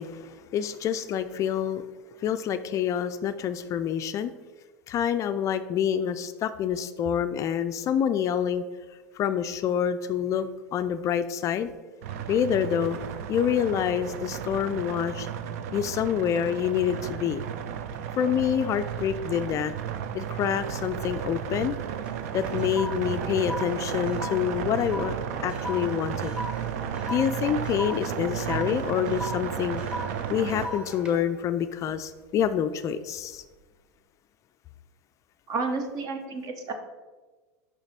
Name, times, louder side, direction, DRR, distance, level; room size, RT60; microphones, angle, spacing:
voice 1, 0.0-1.8 2.2-4.3 4.9-8.6 9.1-11.7 12.3-13.0 13.3-15.3 15.7-17.4 18.2-19.7 20.1-21.8 22.3-25.1 25.4-26.3 27.1-29.8 30.3-33.4, left 9 dB, 35° left, 11 dB, 0.3 m, -27 dB
sound 1, 12.0-30.7, right 8 dB, 60° right, 0.5 m, -33 dB
sound 2, 21.2-21.7 22.1-32.6 33.1-33.4, left 1 dB, 10° right, 1.4 m, -39 dB
voice 2, 35.5-36.7, right 3 dB, 40° right, 6 dB, 1.0 m, -31 dB
5.7 x 5.5 x 4.3 m, 1.3 s
hypercardioid pair, 85°, 9 cm